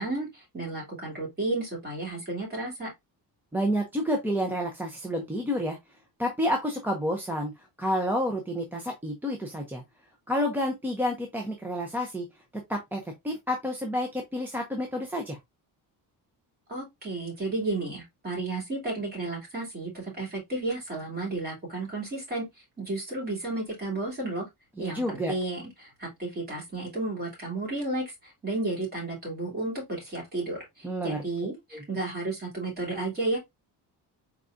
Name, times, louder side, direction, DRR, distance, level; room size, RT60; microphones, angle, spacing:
voice 1, 0.0-2.9 16.7-22.5 22.8-24.5 24.8-33.4, right 2 dB, 25° right, 2.9 m, -32 dB
voice 2, 3.5-5.8 6.2-9.8 10.3-12.3 12.7-15.4 24.8-25.3 30.8-31.2 31.7-31.8, equal, 5° right, 0.5 m, -29 dB
4.6 x 3.7 x 2.5 m
cardioid pair, 175°, 41 cm